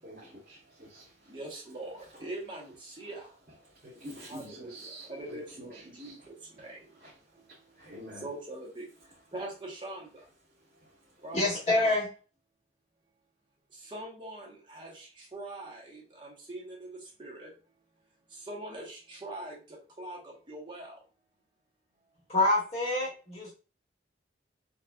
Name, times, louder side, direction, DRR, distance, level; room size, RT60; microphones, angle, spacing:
voice 1, 0.0-1.4 2.0-2.3 2.9-3.1 3.6-6.3 6.6-8.3 9.0-9.3 10.4-11.4, equal, 55° right, -6 dB, 1.0 m, -49 dB
voice 2, 1.3-3.3 4.3-6.9 8.2-8.9 9.3-10.3 11.2-11.9 13.7-17.5 18.3-21.0, right 1 dB, 25° right, -3 dB, 1.0 m, -43 dB
voice 3, 11.3-12.1 22.3-23.5, left 2 dB, 35° left, -2 dB, 1.2 m, -26 dB
4.1 x 2.3 x 2.3 m, 0.35 s
head